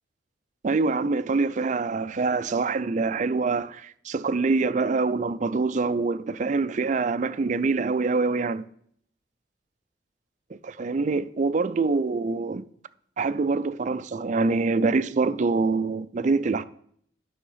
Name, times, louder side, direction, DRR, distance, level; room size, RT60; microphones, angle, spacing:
voice 1, 0.6-8.6 10.5-12.7 13.2-16.6, right 3 dB, 45° right, 0.4 m, -25 dB
10.0 x 6.3 x 5.7 m
head